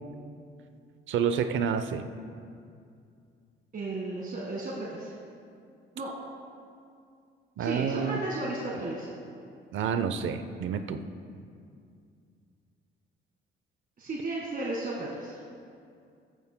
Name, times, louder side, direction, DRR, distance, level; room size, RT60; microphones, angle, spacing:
voice 1, 1.1-2.1 7.6-8.2 8.7-8.8 9.7-11.0, right 7 dB, 75° right, 10 dB, 0.7 m, -29 dB
voice 2, 3.7-5.1 6.0-6.1 7.6-9.1 14.0-15.4, right 2 dB, 45° right, -4 dB, 1.8 m, -34 dB
15.5 x 14.0 x 2.2 m, 2.4 s
cardioid pair, 90°, 20 cm